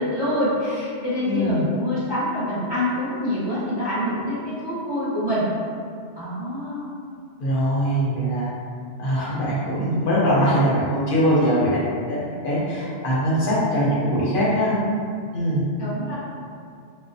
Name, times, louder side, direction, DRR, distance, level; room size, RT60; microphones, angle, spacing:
voice 1, 0.0-5.5 6.1-6.9 15.8-16.1, left 1 dB, 25° right, -13 dB, 0.7 m, -26 dB
voice 2, 1.2-1.6 7.4-8.5 9.0-11.8 12.1-14.8 15.3-15.7, equal, 55° left, -7 dB, 0.8 m, -22 dB
2.3 x 2.2 x 2.5 m, 2.2 s
omnidirectional pair, 1.2 m